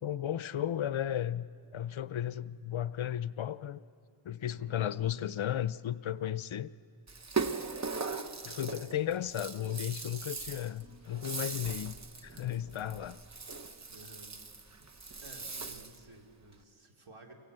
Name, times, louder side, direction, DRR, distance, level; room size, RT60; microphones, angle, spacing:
voice 1, 0.0-1.5 1.7-3.8 4.2-6.7 8.4-12.0 12.2-13.2, left 10 dB, 70° left, 0.6 m, -34 dB
voice 2, 4.4-4.8 13.9-14.4 15.2-17.3, right 2 dB, 75° right, 2.8 m, -53 dB
Rattle (instrument), 7.1-16.1, right 4 dB, 35° right, 1.0 m, -39 dB
29.5 x 17.0 x 7.9 m
wide cardioid pair, 90°, 50 cm